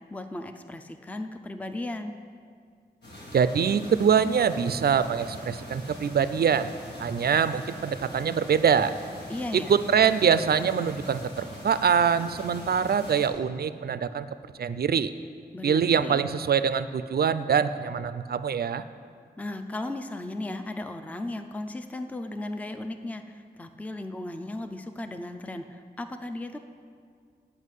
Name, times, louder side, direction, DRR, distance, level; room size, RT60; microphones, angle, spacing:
voice 1, 0.1-2.1 9.3-9.7 15.5-16.3 19.4-26.6, left 1 dB, 10° left, 7 dB, 0.4 m, -36 dB
sound 1, 3.0-13.3, left 1 dB, 90° left, 2.4 m, -42 dB
voice 2, 3.3-6.7 7.0-8.9 9.5-14.3 14.6-15.1 15.6-18.8, right 7 dB, 65° right, 13 dB, 0.4 m, -24 dB
9.4 x 5.4 x 8.2 m, 2.2 s
wide cardioid pair, 90°, 17 cm